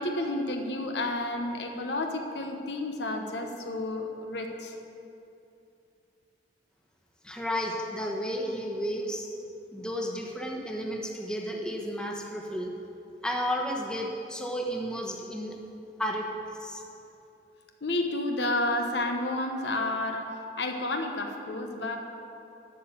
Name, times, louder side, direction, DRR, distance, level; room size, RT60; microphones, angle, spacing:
voice 1, 0.0-4.7 17.8-22.0, left 2 dB, 75° left, 3 dB, 1.0 m, -31 dB
voice 2, 7.2-9.3 9.7-12.7 13.2-15.5 16.0-16.3 16.6-16.8, equal, 5° left, 0 dB, 1.1 m, -32 dB
11.5 x 7.0 x 6.8 m, 2.8 s
head